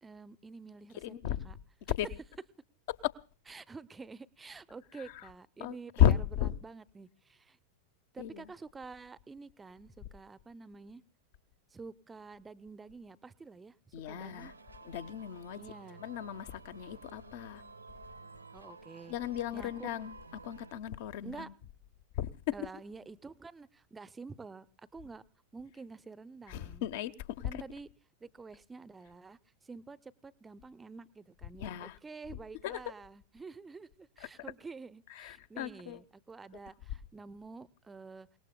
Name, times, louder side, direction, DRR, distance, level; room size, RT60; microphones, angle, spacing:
voice 1, 0.0-1.0 1.3-1.6 3.5-7.6 8.1-11.0 11.7-14.5 15.6-16.0 18.5-19.2 19.5-19.9 21.2-21.5 22.5-25.2 25.5-26.9 27.4-27.9 28.2-38.3, right 4 dB, 15° right, 0.7 m, -49 dB
voice 2, 1.0-1.5 2.0-2.1 3.0-3.1 5.0-5.3 5.6-6.6 8.2-8.5 13.9-14.5 14.8-15.6 16.0-17.6 19.1-21.5 22.1-22.5 26.5-27.6 31.6-32.0 32.6-32.8 34.2-34.3 35.1-36.0, left 10 dB, 50° left, 0.9 m, -34 dB
sound 1, 14.1-20.8, right 4 dB, 85° right, 1.1 m, -53 dB
29.5 x 19.0 x 2.2 m
figure-of-eight pair, 90°, 0 cm